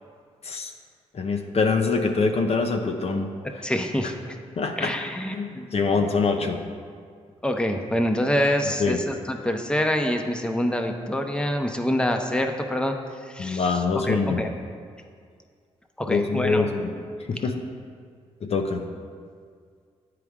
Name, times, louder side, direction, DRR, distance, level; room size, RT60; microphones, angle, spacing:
voice 1, 1.1-3.3 4.6-4.9 5.3-6.6 8.8-9.0 13.4-14.5 16.1-16.9 17.3-17.6 18.4-18.8, left 4 dB, 55° left, 4 dB, 0.6 m, -24 dB
voice 2, 3.6-4.1 4.8-5.7 7.4-12.9 13.3-13.7 14.0-14.5 16.0-16.7, equal, 5° left, 4 dB, 0.8 m, -26 dB
9.4 x 4.7 x 3.6 m, 2.1 s
supercardioid pair, 55°, 13 cm